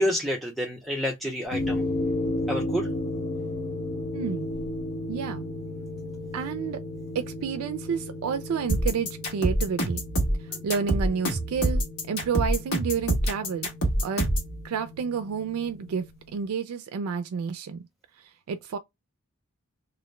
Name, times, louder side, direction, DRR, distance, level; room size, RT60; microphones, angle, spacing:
voice 1, 0.0-1.8 2.5-2.9, equal, ahead, 0.4 m, -28 dB
sound 1, 1.5-16.1, left 1 dB, 45° left, 0.9 m, -34 dB
voice 2, 4.1-4.5 5.1-5.5 6.3-6.8 7.1-10.0 10.6-13.7 14.0-14.3 14.6-16.0 16.3-17.8 18.2-18.8, right 6 dB, 90° right, 0.3 m, -30 dB
sound 2, 8.7-14.5, right 1 dB, 85° left, 1.2 m, -25 dB
2.5 x 2.1 x 2.9 m
head